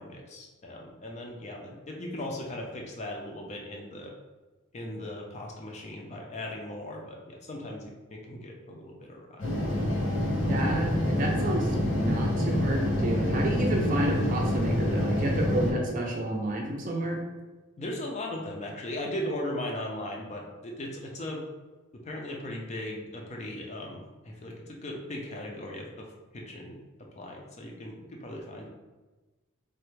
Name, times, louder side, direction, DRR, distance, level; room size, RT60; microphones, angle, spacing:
voice 1, 0.0-4.1 4.7-9.5 17.8-21.4 21.9-26.8 27.1-28.7, left 1 dB, 30° left, 0 dB, 0.4 m, -38 dB
sound 1, 9.4-15.7, left 1 dB, 90° left, 1.2 m, -27 dB
voice 2, 10.5-10.9 11.2-17.2, right 1 dB, 40° right, 0 dB, 0.4 m, -30 dB
3.2 x 2.1 x 3.1 m, 1.2 s
head